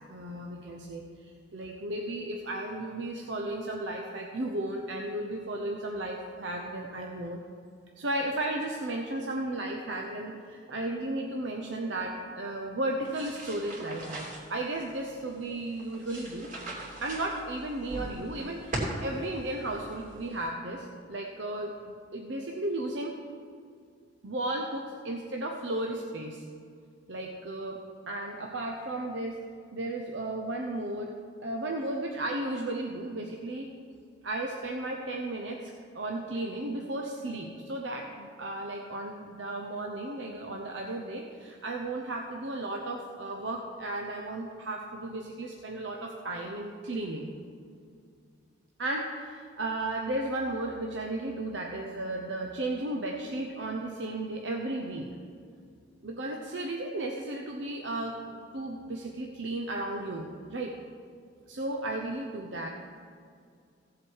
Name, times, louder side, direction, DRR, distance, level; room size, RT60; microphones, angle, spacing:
voice 1, 0.1-7.4 8.0-16.5 17.0-23.2 24.2-26.4 27.1-29.4 29.7-31.1 31.4-33.7 34.2-47.3 48.8-55.1 56.0-60.8 61.5-62.7, right 1 dB, 70° right, 1 dB, 0.8 m, -34 dB
sound 1, 13.0-20.5, right 1 dB, 45° right, 2.9 m, -40 dB
16.0 x 7.5 x 4.7 m, 2.3 s
head